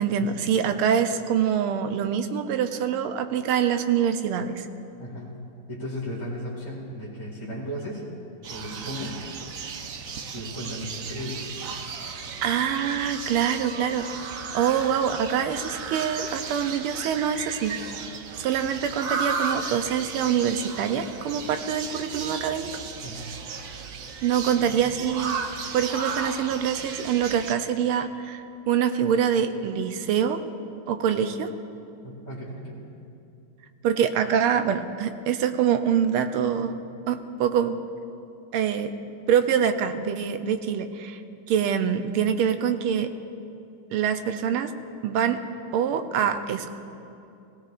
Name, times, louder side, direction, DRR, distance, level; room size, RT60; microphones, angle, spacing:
voice 1, 0.0-4.7 12.4-14.2 14.5-17.8 18.4-22.7 24.2-25.4 25.7-30.4 30.9-31.5 33.8-36.8 37.1-37.8 38.5-38.9 39.3-41.2 41.5-43.1 43.9-44.7 45.0-45.4 45.7-46.8, right 8 dB, 85° right, 9 dB, 1.6 m, -25 dB
voice 2, 5.0-5.4 5.7-8.1 8.5-9.3 10.3-11.5 23.0-23.2 24.6-24.8 32.0-32.8, equal, 15° left, -7 dB, 1.9 m, -36 dB
sound 1, 8.4-27.5, right 5 dB, 70° right, 0.8 m, -35 dB
18.5 x 17.0 x 2.5 m, 2.6 s
omnidirectional pair, 2.3 m